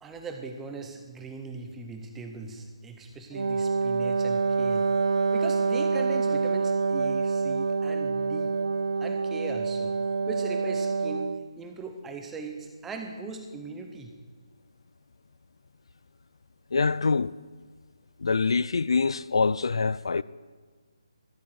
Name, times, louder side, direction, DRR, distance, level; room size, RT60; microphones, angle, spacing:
voice 1, 0.0-4.9 5.3-8.6 9.0-10.0 10.3-14.1, right 4 dB, 5° right, 0.7 m, -39 dB
Wind instrument woodwind instrument, 3.3-11.5, right 4 dB, 75° right, 0.4 m, -26 dB
voice 2, 16.7-17.3 18.2-20.2, left 4 dB, 60° left, 0.3 m, -25 dB
13.0 x 10.5 x 9.3 m
hypercardioid pair, 175°, 3 cm